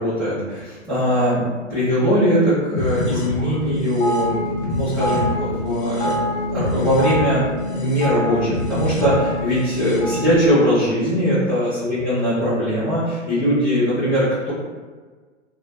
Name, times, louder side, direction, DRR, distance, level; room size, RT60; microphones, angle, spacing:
voice 1, 0.0-1.4 1.7-6.1 6.5-14.5, equal, ahead, -19 dB, 0.8 m, -21 dB
sound 1, 2.7-10.4, left 1 dB, 40° left, 0.8 m, -24 dB
2.4 x 2.3 x 2.4 m, 1.4 s
figure-of-eight pair, 110°, 38 cm